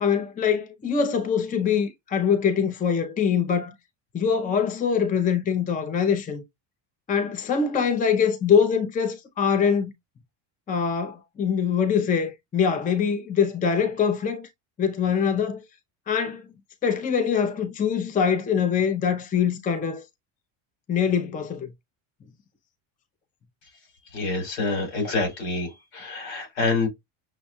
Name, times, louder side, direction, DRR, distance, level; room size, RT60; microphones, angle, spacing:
voice 1, 0.0-3.7 4.1-6.4 7.1-9.9 10.7-14.5 14.8-15.6 16.1-16.4 16.8-20.0 20.9-21.7, left 7 dB, 15° left, 0.5 m, -23 dB
voice 2, 24.1-26.9, left 3 dB, 85° left, 3.3 m, -27 dB
6.3 x 2.2 x 2.7 m
cardioid pair, 130°, 49 cm